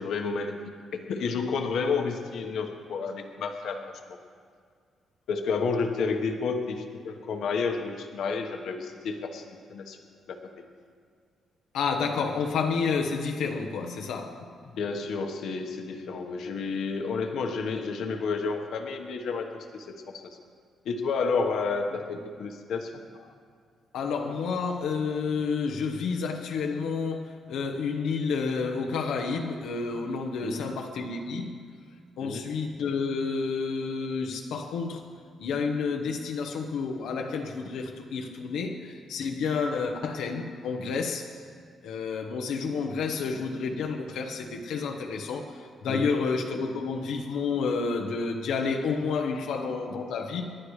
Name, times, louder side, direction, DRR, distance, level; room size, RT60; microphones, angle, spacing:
voice 1, 0.0-3.9 5.3-10.0 10.3-10.4 14.8-20.2 20.8-22.9 30.4-30.7 32.2-32.5 45.8-46.2 49.3-49.4, left 4 dB, 65° left, 1.2 m, -31 dB
voice 2, 11.7-14.5 23.2-23.3 23.9-31.6 32.2-35.1 35.4-41.3 41.8-50.6, left 5 dB, 90° left, 1.0 m, -30 dB
29.0 x 11.5 x 3.3 m
cardioid pair, 175°, 0 cm